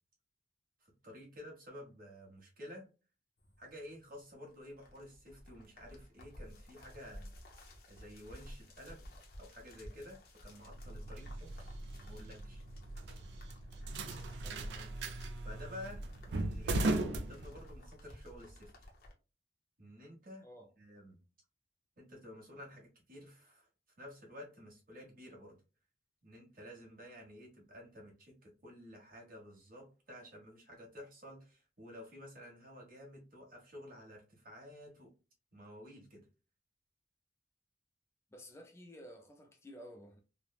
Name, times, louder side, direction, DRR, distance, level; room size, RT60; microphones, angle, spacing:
voice 1, 0.8-2.9 3.6-7.3 7.9-11.8 12.0-12.6 15.3-18.7 19.8-20.5 20.8-21.2 22.0-23.7 24.0-25.5 26.2-35.1 35.5-36.2, left 1 dB, 55° right, 1.1 m, -52 dB
sound 1, 3.4-19.1, equal, 55° left, 0.7 m, -55 dB
sound 2, 10.7-18.0, right 2 dB, 70° right, 0.4 m, -38 dB
voice 2, 14.4-15.2 20.4-20.7 38.3-40.2, equal, 15° left, 0.3 m, -54 dB
3.1 x 2.0 x 2.3 m
head